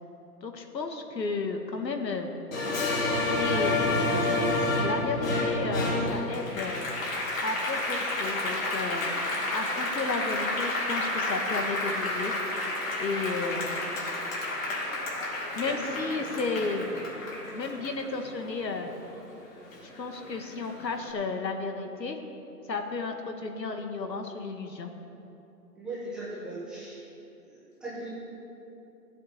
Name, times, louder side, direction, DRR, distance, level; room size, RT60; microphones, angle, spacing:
voice 1, 0.4-2.3 3.4-3.7 4.5-6.9 7.4-9.1 9.5-12.3 13.0-13.8 15.5-16.8 17.5-18.9 20.0-22.2 22.7-24.9, left 3 dB, 85° left, 5 dB, 1.8 m, -33 dB
Applause, 2.5-19.3 19.7-20.9, left 2 dB, 55° left, 3.7 m, -30 dB
voice 2, 25.8-27.0 27.4-28.1, right 2 dB, ahead, -10 dB, 0.7 m, -38 dB
15.0 x 8.2 x 6.7 m, 2.9 s
hypercardioid pair, 150°, 49 cm